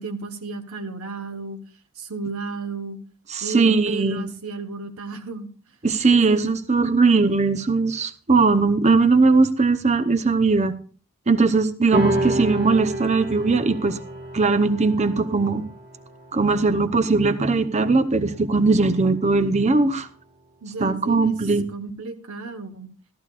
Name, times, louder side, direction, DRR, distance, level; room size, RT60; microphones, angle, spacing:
voice 1, 0.0-1.6 2.0-3.0 3.4-5.5 6.1-6.5 20.6-21.4 21.7-22.9, right 4 dB, 75° right, 7 dB, 1.3 m, -33 dB
voice 2, 3.3-4.3 5.8-10.7 11.3-14.0 14.3-15.6 16.3-20.1 20.8-21.7, right 3 dB, 30° right, 11 dB, 0.8 m, -19 dB
sound 1, 11.9-18.7, right 1 dB, 45° right, 1.7 m, -30 dB
14.5 x 13.0 x 2.5 m, 0.41 s
head